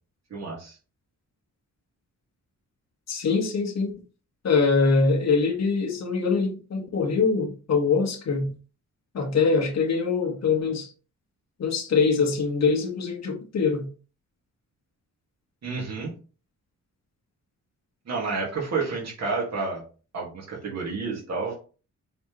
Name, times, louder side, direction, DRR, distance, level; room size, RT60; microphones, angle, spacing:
voice 1, 0.3-0.8 15.6-16.1 18.1-19.8 20.1-21.6, right 4 dB, 55° right, 2.1 m, -30 dB
voice 2, 3.1-3.9 4.4-8.5 9.1-10.9 11.6-13.8, left 4 dB, 55° left, 1.5 m, -23 dB
7.5 x 4.1 x 3.2 m
wide cardioid pair, 165°, 31 cm